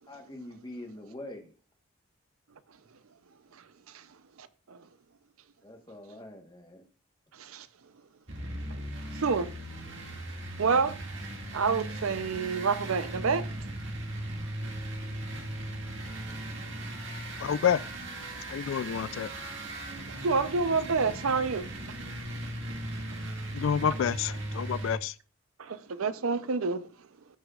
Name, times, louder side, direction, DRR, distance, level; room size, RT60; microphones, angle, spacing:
voice 1, 0.1-1.5 5.6-6.8, left 1 dB, 20° left, 1.2 m, -44 dB
sound 1, 8.3-25.0, right 1 dB, 55° right, 2.1 m, -38 dB
voice 2, 10.6-10.9 11.5-13.4 20.2-21.6 25.6-26.8, right 4 dB, 75° right, 0.6 m, -27 dB
voice 3, 17.4-17.8 18.5-19.3 23.5-25.1, left 8 dB, 65° left, 0.3 m, -28 dB
16.0 x 6.2 x 2.4 m
head